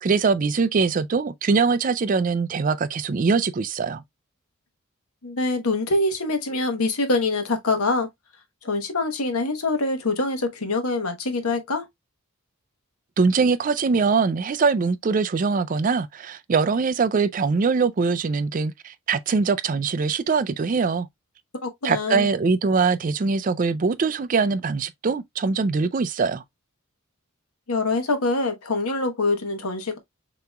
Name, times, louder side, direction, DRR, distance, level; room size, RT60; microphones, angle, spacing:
voice 1, 0.0-4.0 13.2-21.1 21.8-26.4, right 4 dB, 40° right, 0.4 m, -22 dB
voice 2, 5.2-8.1 8.6-11.8 21.6-22.3 27.7-30.0, left 3 dB, 85° left, 1.1 m, -24 dB
6.8 x 2.9 x 2.2 m
head